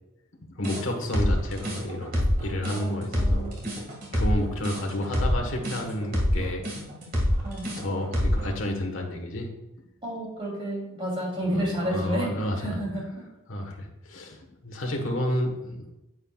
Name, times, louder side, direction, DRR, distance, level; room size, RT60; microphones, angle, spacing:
voice 1, 0.6-3.5 4.1-6.6 7.8-9.5 11.5-12.8 13.5-15.9, left 1 dB, 65° left, 2 dB, 1.4 m, -31 dB
sound 1, 0.6-8.5, equal, 40° right, 2.1 m, -26 dB
voice 2, 2.7-3.5 7.4-7.6 10.0-13.1, right 1 dB, 25° right, -4 dB, 3.0 m, -31 dB
9.5 x 7.8 x 2.4 m, 0.93 s
head